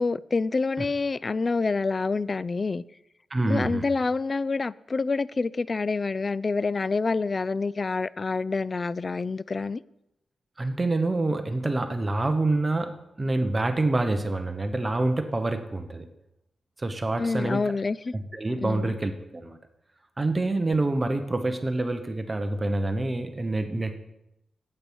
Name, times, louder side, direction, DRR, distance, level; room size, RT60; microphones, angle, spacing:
voice 1, 0.0-2.8 3.5-9.8 17.2-18.1 18.6-18.9, left 4 dB, 40° left, 0.3 m, -27 dB
voice 2, 3.3-3.9 10.6-16.1 16.8-17.8 18.1-19.6 20.2-24.0, right 2 dB, 25° right, 1.0 m, -27 dB
8.9 x 8.4 x 6.2 m
cardioid pair, 95°, 0 cm